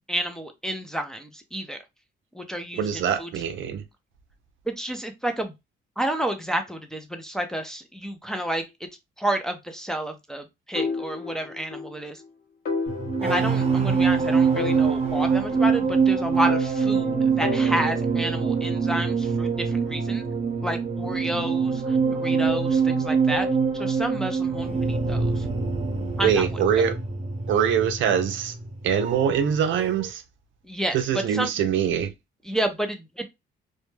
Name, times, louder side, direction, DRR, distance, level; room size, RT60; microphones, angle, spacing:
voice 1, 0.1-1.8 2.3-3.3 4.7-5.5 6.0-8.6 9.2-12.2 13.2-20.2 20.6-23.5 23.7-25.5 26.2-26.6 30.7-31.5 32.4-33.3, right 1 dB, 5° left, 0.4 m, -30 dB
voice 2, 2.7-3.8 26.2-26.9 27.5-28.5 28.8-30.2 30.9-32.1, right 8 dB, 75° right, 0.5 m, -23 dB
sound 1, 10.8-11.9 12.2-12.3 12.7-14.2 14.6-16.0 16.5-18.3, left 4 dB, 45° left, 0.8 m, -33 dB
sound 2, 12.9-29.5 29.8-30.1, right 5 dB, 30° right, 0.8 m, -24 dB
2.2 x 2.1 x 3.1 m
cardioid pair, 90°, 20 cm